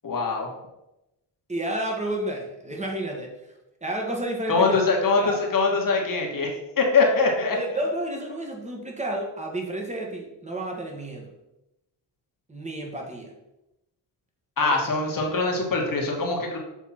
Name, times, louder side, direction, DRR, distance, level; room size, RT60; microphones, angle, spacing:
voice 1, 0.0-0.5 4.5-7.6 14.6-16.6, left 4 dB, 45° left, 0 dB, 1.7 m, -23 dB
voice 2, 1.5-3.3 3.8-4.8 5.2-5.4 7.5-11.3 12.5-13.3 14.6-14.8, right 1 dB, 15° right, 0 dB, 1.8 m, -31 dB
7.3 x 3.5 x 4.3 m, 0.93 s
cardioid pair, 65°, 45 cm